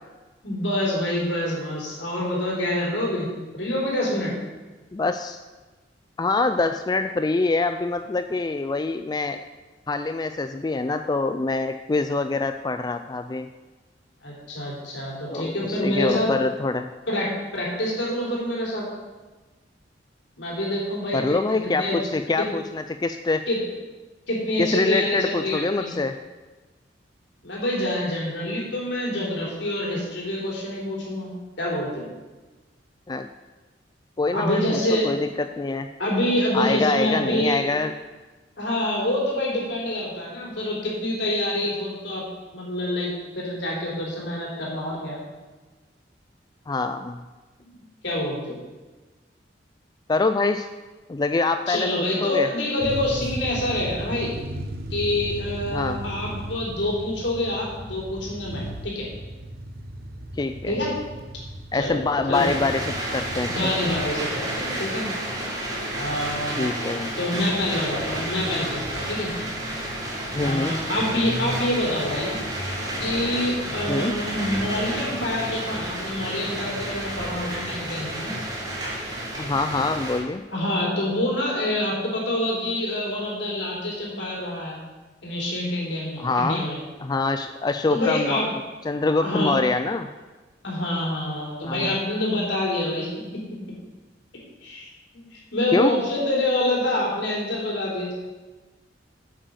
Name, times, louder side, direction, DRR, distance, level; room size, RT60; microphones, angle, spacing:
voice 1, 0.4-3.3 3.5-4.3 14.2-16.3 17.1-18.9 20.4-22.0 22.4-22.5 23.5-23.6 24.3-25.9 27.4-31.3 31.6-32.1 34.3-35.1 36.0-37.7 38.6-42.2 42.5-45.2 47.6-47.7 48.0-48.6 51.7-54.3 54.9-59.1 60.7-60.9 61.7-62.5 63.5-65.0 65.9-66.7 67.1-69.3 70.4-72.4 73.0-78.3 80.5-84.8 85.2-86.8 87.9-88.5 89.2-89.5 90.6-93.1 94.6-94.9 95.1-98.1, left 1 dB, 75° left, -3 dB, 3.8 m, -26 dB
voice 2, 4.9-5.4 6.2-9.4 9.9-13.5 15.3-16.9 21.1-23.4 24.6-26.2 33.1-33.3 34.2-35.9 36.5-37.9 46.7-47.2 50.1-50.7 51.1-52.5 55.7-56.0 60.4-60.8 61.7-63.5 66.6-67.1 70.3-70.7 73.9-74.1 79.4-80.4 86.2-86.7 87.0-88.5 88.8-90.1 91.6-92.0 95.7-95.9, left 3 dB, 20° left, 8 dB, 0.3 m, -25 dB
sound 1, 52.8-64.1, right 1 dB, 55° right, 1.0 m, -36 dB
sound 2, 62.3-80.2, right 1 dB, 20° right, 2.4 m, -31 dB
8.1 x 8.0 x 6.5 m, 1.2 s
head